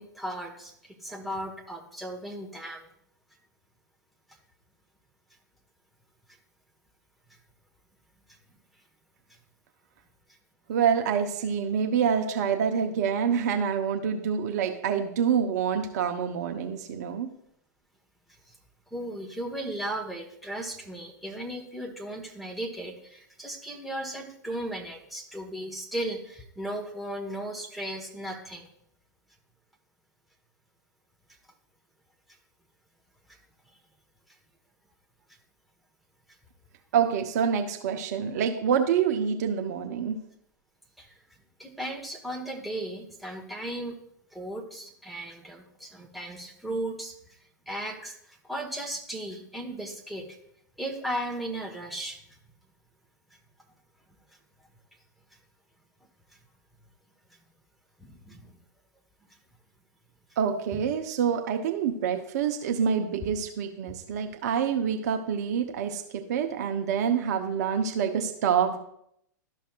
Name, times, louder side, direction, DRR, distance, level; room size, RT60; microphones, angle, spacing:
voice 1, 0.0-2.9 18.5-18.6 18.9-28.7 33.3-33.4 41.0-41.2 41.6-44.0 44.3-47.4 47.7-50.3 50.8-52.4 58.0-58.6 60.7-60.8, right 1 dB, ahead, 0 dB, 1.3 m, -36 dB
voice 2, 10.7-17.3 36.9-40.2 60.4-68.8, right 7 dB, 55° right, 5 dB, 0.8 m, -27 dB
12.5 x 5.7 x 2.4 m, 0.73 s
figure-of-eight pair, 100°, 10 cm